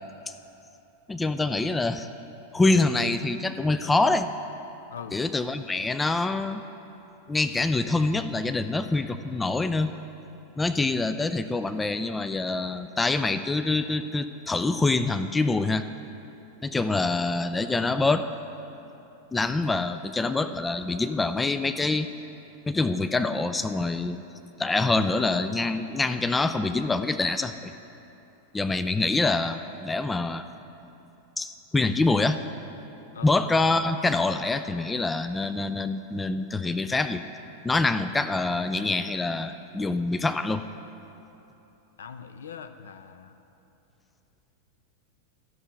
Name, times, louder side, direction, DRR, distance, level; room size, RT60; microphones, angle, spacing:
voice 1, 1.1-2.1 2.5-4.3 5.1-6.6 7.3-9.9 10.6-15.8 16.6-18.3 19.3-22.1 22.7-24.2 24.6-27.7 28.5-30.4 31.4-32.4 33.2-37.2 37.6-40.6, left 3 dB, 10° left, 10 dB, 0.3 m, -25 dB
voice 2, 4.9-5.2 33.1-33.4 42.0-43.4, left 7 dB, 65° left, 9 dB, 0.5 m, -41 dB
12.5 x 6.3 x 5.8 m, 2.9 s
figure-of-eight pair, 90°, 0 cm